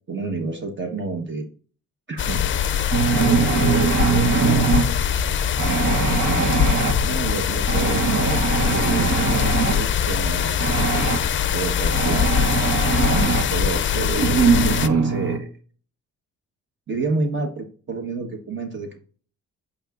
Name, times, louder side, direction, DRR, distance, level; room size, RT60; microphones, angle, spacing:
voice 1, 0.1-1.4 2.1-2.4 3.2-4.8 6.3-6.7 7.0-10.6 11.5-12.3 13.1-15.5 16.9-19.1, right 3 dB, 40° right, 5 dB, 1.3 m, -29 dB
sound 1, 2.2-14.9, left 8 dB, 40° left, 0.5 m, -22 dB
sound 2, 2.9-4.9 5.6-6.9 7.7-9.8 10.6-11.2 11.9-13.4 14.2-15.4, right 5 dB, 80° right, 1.3 m, -21 dB
8.7 x 6.5 x 2.5 m, 0.41 s
cardioid pair, 90°, 30 cm